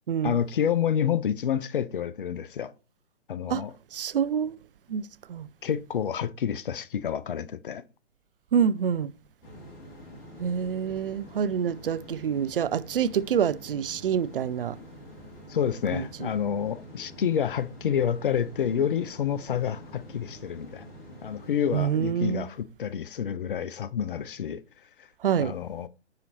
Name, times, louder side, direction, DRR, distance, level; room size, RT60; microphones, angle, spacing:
voice 1, 0.2-2.7 3.3-3.7 5.6-7.8 15.5-20.9 21.2-24.6 25.4-25.9, left 8 dB, 50° left, 0.5 m, -28 dB
voice 2, 3.9-4.6 4.9-5.5 8.5-9.1 10.4-14.8 15.9-16.3 21.7-22.5 25.2-25.5, right 8 dB, 50° right, 0.5 m, -27 dB
sound 1, 9.4-21.8, equal, 25° left, 1.9 m, -47 dB
9.7 x 4.1 x 2.8 m
figure-of-eight pair, 130°, 35 cm